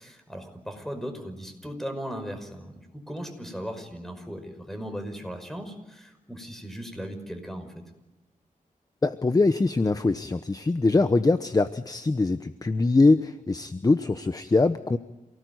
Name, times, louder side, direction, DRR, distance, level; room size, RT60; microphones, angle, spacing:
voice 1, 0.0-7.7, equal, ahead, 7 dB, 5.6 m, -37 dB
voice 2, 9.0-15.0, left 3 dB, 25° left, 10 dB, 0.9 m, -23 dB
28.0 x 18.5 x 9.5 m, 1.1 s
wide cardioid pair, 95°, 14 cm